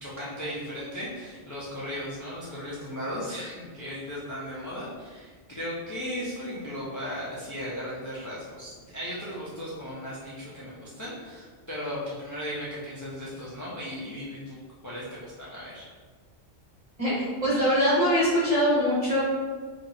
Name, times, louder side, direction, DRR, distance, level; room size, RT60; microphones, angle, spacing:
voice 1, 0.0-15.9, equal, 25° left, -8 dB, 0.4 m, -36 dB
voice 2, 17.0-19.2, equal, 30° right, -8 dB, 1.2 m, -23 dB
2.8 x 2.5 x 4.1 m, 1.5 s
omnidirectional pair, 1.2 m